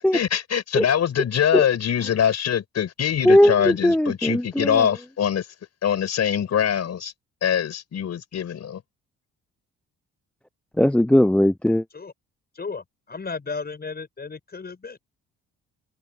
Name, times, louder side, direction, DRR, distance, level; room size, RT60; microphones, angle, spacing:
voice 1, 0.0-5.5 5.8-7.1 7.4-8.8, left 9 dB, 60° left, 5.2 m, -23 dB
voice 2, 3.2-4.9 10.8-11.8, left 1 dB, 5° left, 0.4 m, -18 dB
voice 3, 12.5-15.0, left 4 dB, 30° left, 7.4 m, -34 dB
open air
cardioid pair, 90°, 30 cm